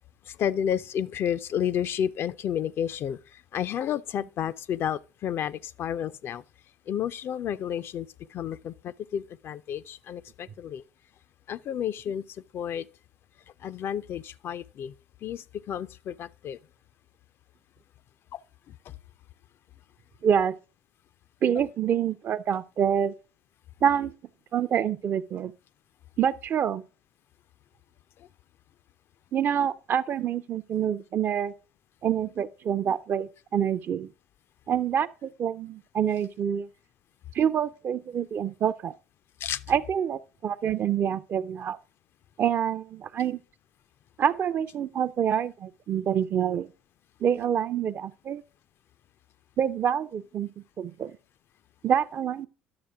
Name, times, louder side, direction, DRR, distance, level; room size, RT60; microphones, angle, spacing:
voice 1, 0.3-3.2 3.5-6.4 6.9-10.8 11.5-12.2 12.5-12.9 13.6-14.9 15.2-16.6 18.3-18.4 39.4-39.6, left 9 dB, 50° left, 0.3 m, -31 dB
voice 2, 20.2-20.5 21.4-23.1 23.8-24.1 24.5-25.5 26.2-26.8 29.3-31.5 32.0-34.1 34.7-36.7 37.3-38.9 39.7-41.8 42.4-43.4 44.2-46.7 47.2-48.4 49.6-50.5 50.8-51.2 51.8-52.5, right 8 dB, 45° right, 0.4 m, -26 dB
10.5 x 6.5 x 3.4 m
hypercardioid pair, 60°, 5 cm